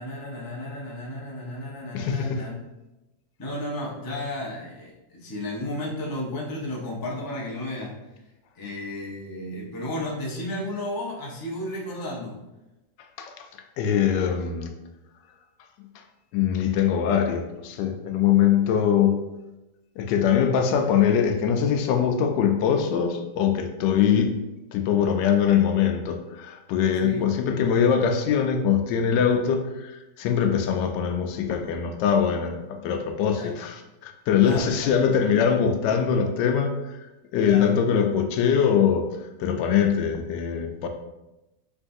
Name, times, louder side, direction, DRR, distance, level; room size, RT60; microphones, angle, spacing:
voice 1, 0.0-2.6 3.4-7.9 8.6-12.4 27.0-27.2 33.3-33.6 34.4-34.9 37.4-37.7, left 1 dB, 30° left, -3 dB, 0.4 m, -33 dB
voice 2, 1.9-2.4 13.2-13.5 13.8-14.7 16.3-19.2 20.0-24.3 24.7-37.0 37.3-39.1 39.4-40.9, left 8 dB, 85° left, 5 dB, 1.2 m, -22 dB
4.6 x 3.5 x 2.6 m, 0.98 s
omnidirectional pair, 1.9 m